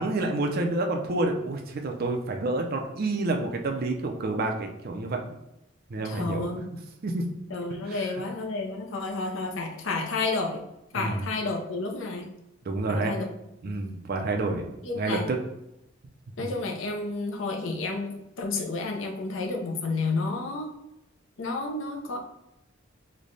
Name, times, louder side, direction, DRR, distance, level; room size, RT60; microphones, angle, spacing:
voice 1, 0.0-5.3 5.9-6.5 7.0-7.2 7.9-8.1 10.9-11.2 12.7-13.1 13.6-15.4 16.4-16.5, right 2 dB, 50° right, 3 dB, 0.5 m, -29 dB
voice 2, 6.0-6.6 7.5-10.6 10.9-12.3 12.9-13.3 13.7-13.8 14.8-15.3 16.4-20.7 21.4-22.2, left 3 dB, 70° left, 2 dB, 0.6 m, -31 dB
3.2 x 2.2 x 3.9 m, 0.87 s
head